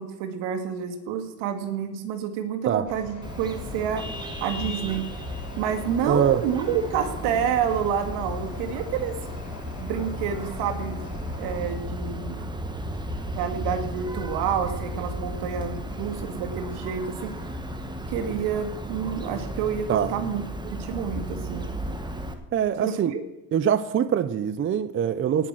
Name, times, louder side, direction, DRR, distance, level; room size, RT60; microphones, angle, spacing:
voice 1, 0.0-4.1 4.4-5.1 5.6-9.2 9.8-11.1 11.4-12.4 13.3-17.3 18.1-21.6 22.8-23.2, right 8 dB, 75° right, 2.3 m, -29 dB
sound 1, 2.9-11.7, left 6 dB, 45° left, 3.6 m, -41 dB
Vehicle horn car horn honking, 3.2-22.3, equal, 10° right, 1.5 m, -34 dB
voice 2, 6.1-6.4 19.9-20.1 22.5-23.1 23.5-25.5, right 9 dB, 30° right, 0.6 m, -23 dB
17.5 x 7.7 x 6.3 m
supercardioid pair, 110°, 42 cm